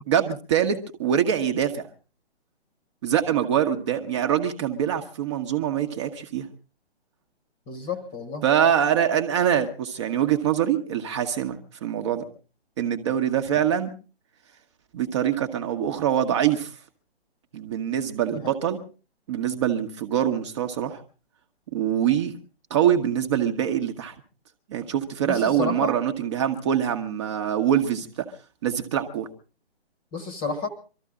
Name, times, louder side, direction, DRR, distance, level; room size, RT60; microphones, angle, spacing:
voice 1, 0.1-1.9 3.0-6.5 8.4-12.2 12.8-13.9 14.9-16.7 17.5-18.8 19.3-21.0 21.7-22.4 22.7-24.1 24.7-28.3 28.6-29.3, right 9 dB, 25° right, 6 dB, 1.2 m, -24 dB
voice 2, 7.7-8.4 18.4-18.6 25.2-25.9 30.1-30.7, left 5 dB, 15° left, 10 dB, 1.2 m, -31 dB
24.0 x 14.0 x 3.7 m, 0.35 s
figure-of-eight pair, 140°, 32 cm